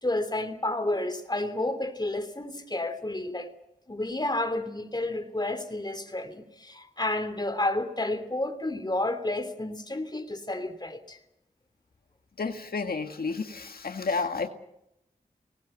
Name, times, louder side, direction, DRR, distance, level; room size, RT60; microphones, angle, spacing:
voice 1, 0.0-3.5 3.9-11.2 14.1-14.2, left 2 dB, 25° left, 3.0 m, -31 dB
voice 2, 12.4-14.5, left 4 dB, 85° left, 1.8 m, -31 dB
24.0 x 20.0 x 7.9 m
wide cardioid pair, 55°, 15 cm